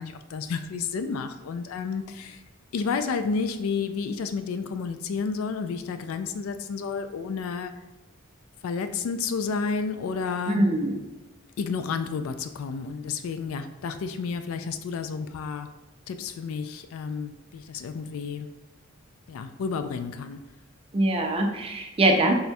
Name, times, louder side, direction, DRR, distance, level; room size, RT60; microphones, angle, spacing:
voice 1, 0.0-2.4 2.7-7.7 8.6-10.6 11.6-15.7 16.1-18.5 19.3-20.4, left 5 dB, 85° left, 9 dB, 0.3 m, -31 dB
voice 2, 10.5-10.9 20.9-22.3, right 1 dB, 25° right, 3 dB, 0.4 m, -23 dB
4.1 x 3.5 x 2.2 m, 1.1 s
head